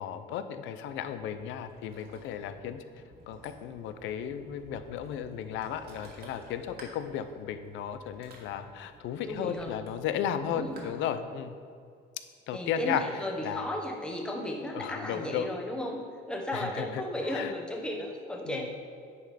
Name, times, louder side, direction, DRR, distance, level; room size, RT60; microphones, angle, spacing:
voice 1, 0.0-2.8 3.3-11.5 12.5-13.0 13.4-13.6 14.7-15.5 16.5-17.5 18.5-18.7, left 9 dB, 75° left, 10 dB, 0.6 m, -35 dB
Ocean, 0.8-10.9, right 2 dB, 55° right, 1.9 m, -54 dB
voice 2, 9.3-9.8 10.5-10.9 12.5-16.0 16.3-18.7, left 1 dB, 5° left, 0 dB, 1.1 m, -34 dB
9.5 x 5.2 x 4.2 m, 2.3 s
cardioid pair, 110°, 20 cm